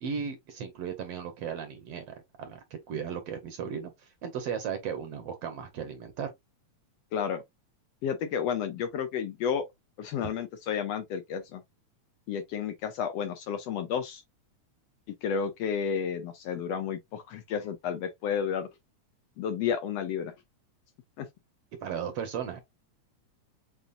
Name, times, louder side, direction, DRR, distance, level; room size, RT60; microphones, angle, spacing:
voice 1, 0.0-6.3 21.8-22.6, right 7 dB, 65° right, 1.8 m, -36 dB
voice 2, 7.1-7.4 8.0-9.6 10.0-11.6 12.3-14.2 15.2-18.7 19.4-20.3 21.2-21.3, left 7 dB, 70° left, 1.7 m, -31 dB
6.9 x 2.9 x 2.5 m
omnidirectional pair, 3.3 m